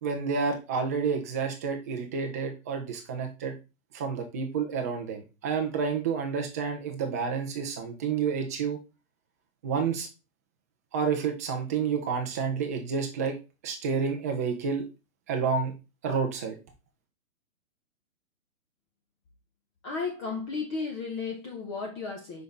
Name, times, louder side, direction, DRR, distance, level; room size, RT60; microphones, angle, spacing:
voice 1, 0.0-3.5 3.9-8.8 9.6-10.1 10.9-13.4 13.6-14.8 15.3-15.7 16.0-16.6, right 5 dB, 15° right, 3 dB, 0.5 m, -29 dB
voice 2, 19.8-22.4, left 4 dB, 20° left, 1 dB, 0.7 m, -34 dB
5.2 x 5.0 x 3.9 m, 0.29 s
hypercardioid pair, 150°, 41 cm